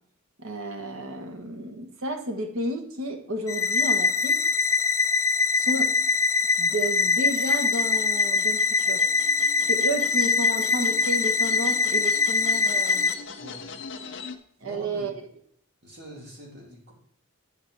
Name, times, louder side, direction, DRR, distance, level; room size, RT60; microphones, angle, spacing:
voice 1, 0.4-4.4 5.5-5.9 6.6-9.0 9.7-13.1 14.6-15.1, right 1 dB, 75° right, 5 dB, 1.3 m, -32 dB
sound 1, 3.5-13.1, left 4 dB, 15° left, 0.3 m, -23 dB
sound 2, 5.3-14.4, left 5 dB, 55° left, 0.7 m, -43 dB
voice 2, 14.6-15.1 15.8-16.9, right 1 dB, 50° right, -3 dB, 2.8 m, -44 dB
10.0 x 5.2 x 4.8 m, 0.66 s
head